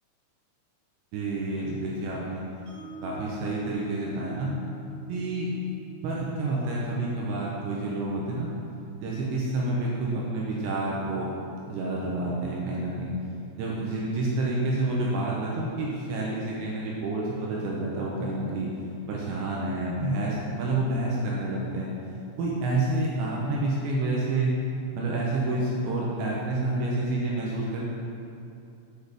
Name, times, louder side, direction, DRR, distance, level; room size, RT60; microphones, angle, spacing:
voice 1, 1.1-2.4 3.0-4.5 5.1-5.5 6.0-8.5 9.0-11.3 11.7-13.1 13.6-18.7 19.1-21.9 22.4-24.5 24.9-27.8, right 2 dB, 80° right, -4 dB, 2.8 m, -29 dB
Mallet percussion, 2.7-8.8, left 1 dB, 50° right, 2.2 m, -46 dB
8.1 x 6.1 x 3.4 m, 2.7 s
omnidirectional pair, 5.6 m